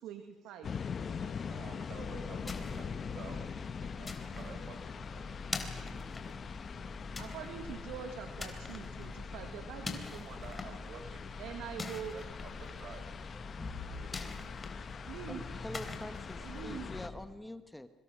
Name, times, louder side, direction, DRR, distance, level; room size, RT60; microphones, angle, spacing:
voice 1, 0.0-0.7 4.3-4.6 7.2-10.5 11.4-12.2 15.0-15.4 16.4-16.9, right 8 dB, 80° right, 6 dB, 1.9 m, -44 dB
sound 1, 0.6-17.1, left 6 dB, 45° left, 1.1 m, -43 dB
voice 2, 0.9-5.4 5.7-5.9 8.5-8.7 9.0-9.3 10.1-11.3 12.1-13.2 13.8-14.3 16.3-17.2, right 5 dB, 60° right, 6 dB, 4.6 m, -52 dB
sound 2, 1.9-17.2, left 3 dB, 25° left, 3.6 m, -44 dB
voice 3, 15.3-17.9, left 1 dB, 5° left, 10 dB, 1.4 m, -45 dB
25.0 x 24.5 x 6.2 m, 1.2 s
supercardioid pair, 80°, 0 cm